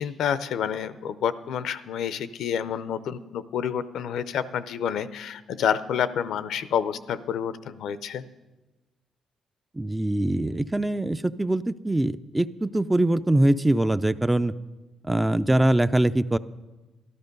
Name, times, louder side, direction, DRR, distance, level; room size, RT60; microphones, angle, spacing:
voice 1, 0.0-8.2, left 8 dB, 75° left, 14 dB, 0.6 m, -28 dB
voice 2, 9.7-14.5 15.0-16.4, right 1 dB, 10° right, 13 dB, 0.4 m, -23 dB
12.5 x 12.5 x 5.3 m, 1.1 s
cardioid pair, 90°, 0 cm